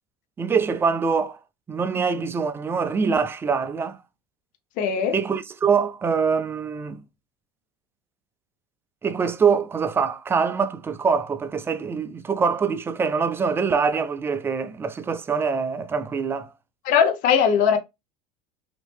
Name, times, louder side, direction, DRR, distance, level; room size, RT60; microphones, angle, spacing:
voice 1, 0.4-1.4 1.7-4.0 5.1-7.0 9.0-16.5, right 5 dB, 15° right, 0.3 m, -24 dB
voice 2, 4.8-5.1 16.8-17.8, left 7 dB, 55° left, 0.6 m, -19 dB
2.9 x 2.7 x 3.4 m
supercardioid pair, 130°, 16 cm